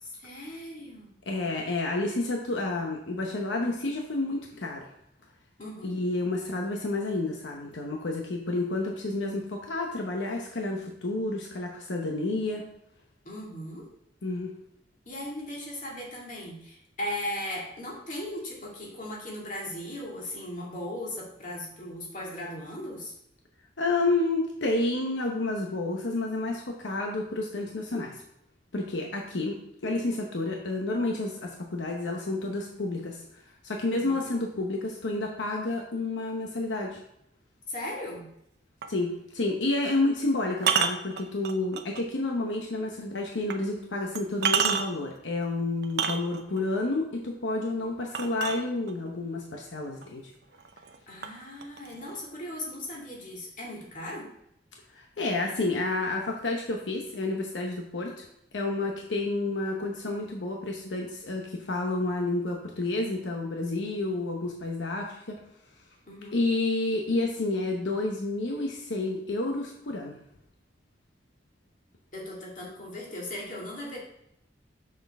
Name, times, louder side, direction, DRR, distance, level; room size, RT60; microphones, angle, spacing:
voice 1, 0.0-1.1 5.6-6.0 13.2-13.9 15.1-23.1 33.9-34.2 37.7-38.3 51.1-54.3 66.1-66.4 72.1-74.0, left 1 dB, 45° left, -3 dB, 2.2 m, -38 dB
voice 2, 1.3-4.9 5.8-12.6 14.2-14.5 23.8-28.2 28.7-29.6 29.8-37.0 38.9-50.3 54.9-58.3 58.5-65.4 66.3-70.2, left 2 dB, 85° left, 1 dB, 0.9 m, -30 dB
sound 1, 38.8-39.0 40.6-42.0 42.5-42.6 43.5-43.6 44.2-45.1 45.8-46.6 48.1-49.1 50.0-50.1 50.5-51.0 51.2-52.2, right 7 dB, 65° right, 0.6 m, -28 dB
6.6 x 6.2 x 3.5 m, 0.78 s
head